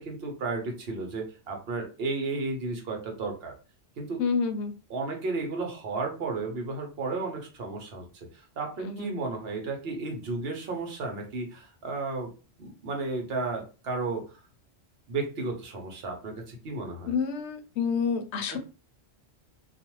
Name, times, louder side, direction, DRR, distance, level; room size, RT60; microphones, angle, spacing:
voice 1, 0.0-3.5 4.0-4.2 4.9-8.0 8.6-12.3 12.6-14.2 15.1-17.1 18.5-18.6, right 3 dB, 65° right, 2 dB, 1.0 m, -33 dB
voice 2, 4.2-4.7 8.8-9.1 17.1-18.6, left 5 dB, 75° left, 7 dB, 0.8 m, -28 dB
2.4 x 2.3 x 2.9 m, 0.33 s
omnidirectional pair, 1.2 m